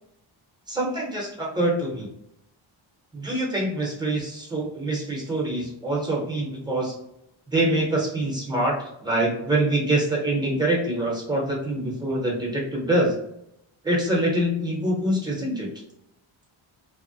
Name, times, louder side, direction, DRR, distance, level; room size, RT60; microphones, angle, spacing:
voice 1, 0.7-2.1 3.1-6.9 7.5-8.7 9.0-13.2 13.8-15.7, right 1 dB, 10° right, -3 dB, 0.7 m, -25 dB
2.7 x 2.1 x 2.5 m, 0.78 s
wide cardioid pair, 170°, 49 cm